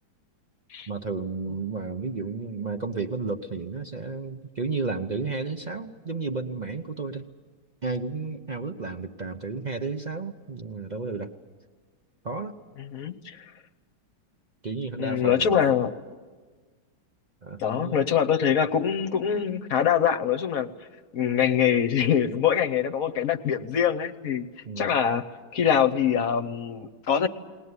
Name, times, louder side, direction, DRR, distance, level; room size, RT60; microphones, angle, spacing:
voice 1, 0.9-7.3 7.8-11.3 12.2-12.5 14.6-15.7 17.4-18.0 24.6-25.0, right 4 dB, 45° right, 6 dB, 0.5 m, -32 dB
voice 2, 12.9-13.4 15.0-15.9 17.6-20.7 21.1-24.5 24.8-25.2 25.5-27.3, left 8 dB, 60° left, 8 dB, 1.2 m, -24 dB
21.0 x 19.0 x 9.6 m, 1.4 s
omnidirectional pair, 1.9 m